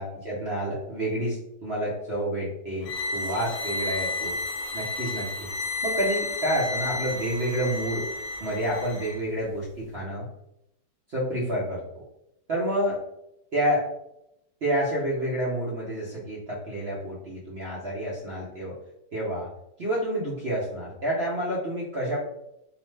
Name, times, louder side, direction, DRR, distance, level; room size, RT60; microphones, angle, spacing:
voice 1, 0.0-4.4 4.7-5.5 5.8-8.1 8.4-10.3 11.1-12.0 12.5-13.0 13.5-13.9 14.6-18.8 19.1-19.5 19.8-22.2, right 1 dB, 65° right, -6 dB, 0.6 m, -29 dB
sound 1, 2.8-9.2, left 2 dB, 70° left, 0.8 m, -32 dB
3.0 x 2.0 x 3.1 m, 0.81 s
omnidirectional pair, 1.9 m